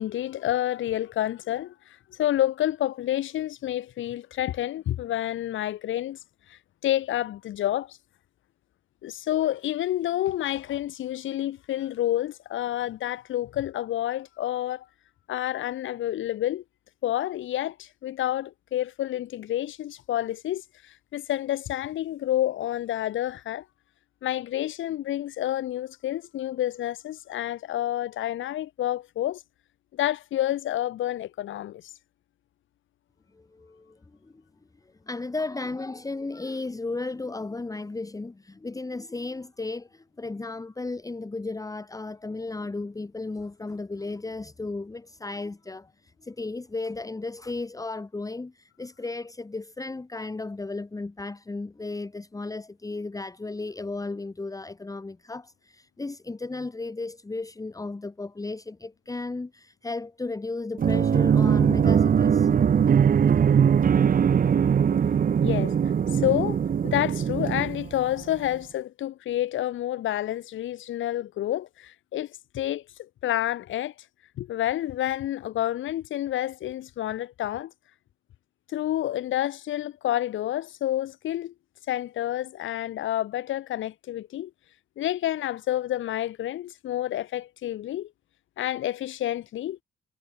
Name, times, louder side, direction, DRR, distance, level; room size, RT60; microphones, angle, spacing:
voice 1, 0.0-6.2 6.5-8.0 9.0-14.9 15.3-16.6 17.0-23.6 24.2-29.4 29.9-31.8 65.4-65.7 66.1-73.9 74.4-77.7 78.7-81.5 81.9-84.5 85.0-88.1 88.6-89.8, left 13 dB, 75° left, 2.4 m, -29 dB
voice 2, 33.3-34.4 34.8-62.5 62.8-62.9, left 3 dB, 15° left, 1.7 m, -35 dB
sound 1, 60.8-68.4, right 7 dB, 45° right, 1.2 m, -21 dB
cardioid pair, 90°, 20 cm